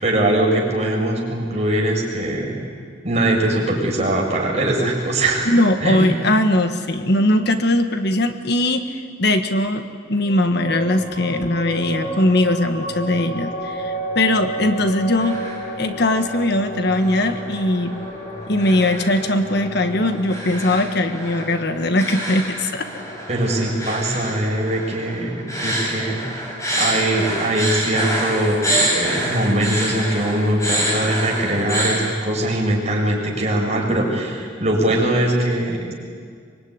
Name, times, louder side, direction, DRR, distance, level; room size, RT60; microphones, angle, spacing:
voice 1, 0.0-2.6 3.0-5.5 5.8-6.1 23.3-26.4 26.8-35.9, right 1 dB, 35° right, -1 dB, 6.5 m, -21 dB
voice 2, 5.4-15.4 15.8-17.9 18.5-22.9, left 1 dB, 60° left, 7 dB, 1.5 m, -20 dB
sound 1, 10.2-23.1, right 1 dB, 40° left, 6.6 m, -32 dB
sound 2, 15.1-15.7 16.0-16.5 16.9-32.0, right 1 dB, 15° left, 6.6 m, -27 dB
24.5 x 23.5 x 9.7 m, 2.1 s
head